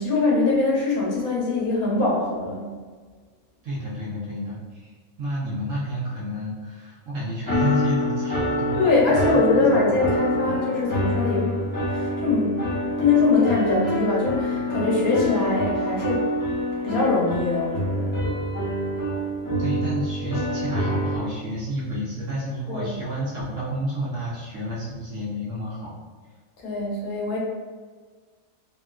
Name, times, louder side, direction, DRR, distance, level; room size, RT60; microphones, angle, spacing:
voice 1, 0.0-2.7 8.8-16.3 16.8-18.2 22.7-22.9 26.6-27.4, left 3 dB, 85° left, -5 dB, 1.4 m, -23 dB
voice 2, 3.6-9.0 9.3-10.0 19.6-25.9, equal, 65° right, -7 dB, 1.0 m, -30 dB
sound 1, 7.5-21.2, equal, 10° left, 0.9 m, -26 dB
3.6 x 2.3 x 2.3 m, 1.5 s
omnidirectional pair, 1.5 m